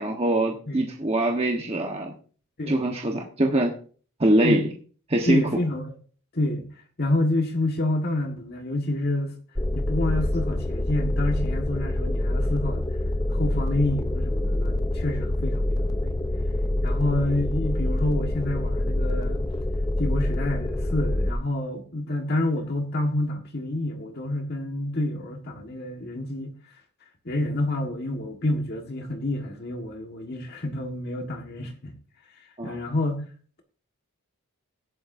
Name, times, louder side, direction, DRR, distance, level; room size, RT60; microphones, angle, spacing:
voice 1, 0.0-2.1 2.7-3.7 4.2-4.6 5.1-5.5 32.6-32.8, right 1 dB, 25° right, 1.2 m, -23 dB
voice 2, 5.3-5.9 6.3-6.7 7.0-9.4 9.7-12.8 13.3-16.1 16.8-19.4 20.0-26.5 27.2-31.9 32.6-33.2, left 1 dB, 45° left, 1.6 m, -28 dB
sound 1, 9.6-21.3, left 1 dB, 15° left, 0.7 m, -26 dB
16.0 x 10.5 x 2.7 m
head